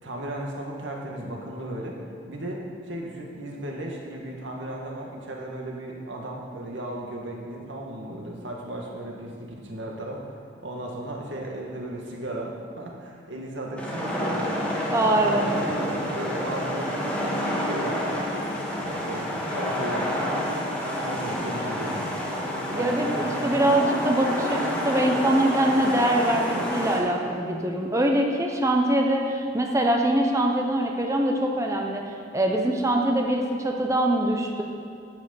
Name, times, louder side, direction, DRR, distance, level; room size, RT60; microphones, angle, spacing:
voice 1, 0.0-2.0 2.3-14.8 15.1-18.3 18.7-19.3 19.5-20.3 20.8-22.0 22.7-23.0 23.3-23.6, right 1 dB, 85° right, -1 dB, 1.9 m, -35 dB
sound 1, 13.8-27.0, equal, 5° left, 1.8 m, -29 dB
voice 2, 14.9-15.5 22.7-32.0 32.3-34.6, right 1 dB, 15° right, 1 dB, 0.9 m, -23 dB
11.5 x 6.3 x 7.1 m, 2.4 s
head